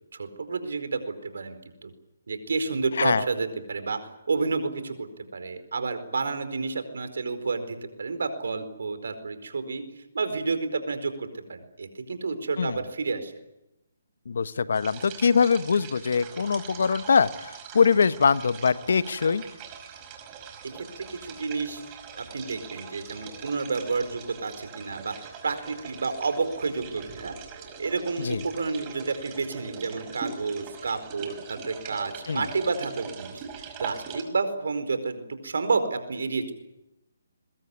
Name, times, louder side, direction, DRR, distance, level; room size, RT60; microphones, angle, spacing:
voice 1, 0.1-1.9 2.3-4.0 4.3-5.1 5.3-9.8 10.1-13.3 20.7-21.8 22.2-27.3 27.8-33.4 33.8-36.5, right 4 dB, 70° right, 10 dB, 4.6 m, -30 dB
voice 2, 14.3-19.4 28.2-28.4 32.3-32.4, left 5 dB, 65° left, 14 dB, 1.3 m, -23 dB
sound 1, 14.7-34.2, right 6 dB, 25° right, 5.1 m, -42 dB
23.0 x 21.5 x 9.7 m, 0.92 s
hypercardioid pair, 145°, 0 cm